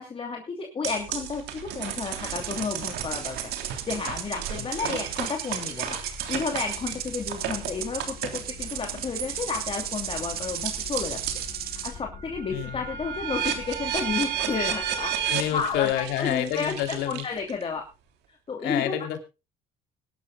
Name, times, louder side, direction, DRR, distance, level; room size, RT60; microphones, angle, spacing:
voice 1, 0.0-6.0 6.3-11.2 11.6-15.1 15.5-17.8 18.5-18.9, left 5 dB, 35° left, 2 dB, 2.8 m, -32 dB
sound 1, 0.8-11.5 12.0-17.6, right 9 dB, 85° right, 3.3 m, -33 dB
sound 2, 2.3-12.0, right 10 dB, 65° right, 2.1 m, -36 dB
voice 2, 4.6-4.9 12.5-12.8 15.3-17.2 18.6-19.2, left 12 dB, 90° left, 6 dB, 3.1 m, -29 dB
sound 3, 5.7-17.9, left 7 dB, 55° left, 2.9 m, -46 dB
23.0 x 12.0 x 2.3 m, 0.28 s
cardioid pair, 110°, 17 cm